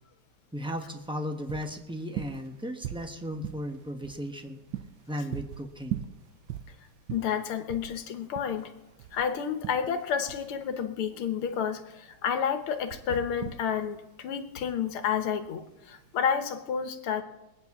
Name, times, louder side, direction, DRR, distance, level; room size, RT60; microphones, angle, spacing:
voice 1, 0.5-4.6 5.1-6.0, equal, 5° right, 4 dB, 0.4 m, -36 dB
sound 1, 0.6-16.3, right 12 dB, 65° right, 1.1 m, -42 dB
voice 2, 7.1-8.7 9.1-17.2, left 7 dB, 85° left, 9 dB, 2.0 m, -30 dB
21.0 x 9.1 x 6.0 m, 0.97 s
omnidirectional pair, 2.3 m